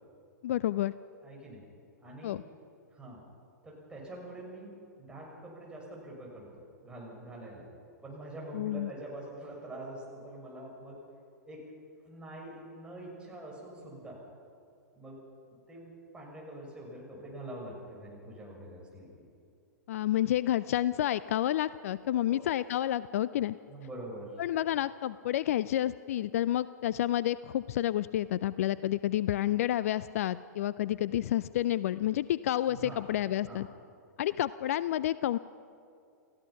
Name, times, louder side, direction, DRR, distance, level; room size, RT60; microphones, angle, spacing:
voice 1, 0.4-0.9 2.2-2.4 8.5-8.9 19.9-23.6 24.4-33.7 34.2-35.4, left 12 dB, 55° left, 17 dB, 0.4 m, -30 dB
voice 2, 1.2-1.6 2.0-2.3 2.9-3.2 3.6-4.7 5.0-7.7 8.0-11.0 11.4-11.7 12.0-14.2 15.0-15.2 15.7-19.2 22.1-22.5 23.4-24.4 32.7-33.1 33.5-33.6, right 1 dB, 10° right, -3 dB, 6.3 m, -45 dB
29.0 x 15.5 x 5.7 m, 2.4 s
figure-of-eight pair, 105°, 9 cm